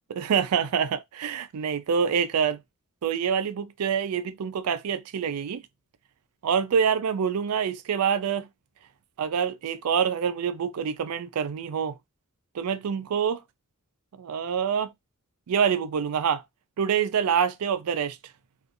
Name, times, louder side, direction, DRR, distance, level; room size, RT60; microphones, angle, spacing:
voice 1, 0.1-2.6 3.0-5.6 6.4-8.5 9.2-12.0 12.5-13.4 14.1-14.9 15.5-16.4 16.8-18.2, right 7 dB, 85° right, 0.4 m, -26 dB
2.6 x 2.4 x 2.5 m
head